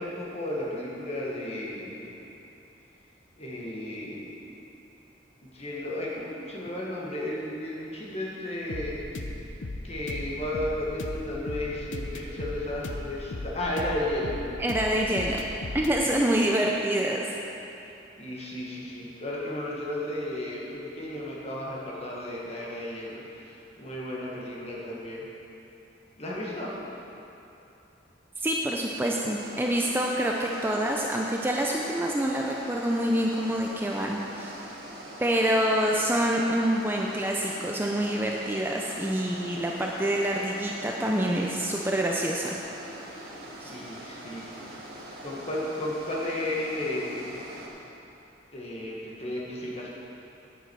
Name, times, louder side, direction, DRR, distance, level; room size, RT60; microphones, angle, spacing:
voice 1, 0.0-2.1 3.4-4.3 5.4-9.0 9.8-14.4 16.0-16.5 18.2-25.3 26.2-26.8 43.7-44.6 45.2-47.3 48.5-49.9, left 1 dB, 35° left, -4 dB, 1.7 m, -34 dB
sound 1, 8.7-16.0, left 2 dB, 90° left, 0.7 m, -36 dB
voice 2, 14.6-15.4 15.7-17.3 28.4-34.5 35.2-42.5 43.6-43.7, right 1 dB, 10° right, -1 dB, 0.5 m, -26 dB
sound 2, 29.4-47.7, right 1 dB, 55° right, 1.7 m, -43 dB
9.9 x 9.3 x 4.7 m, 2.9 s
head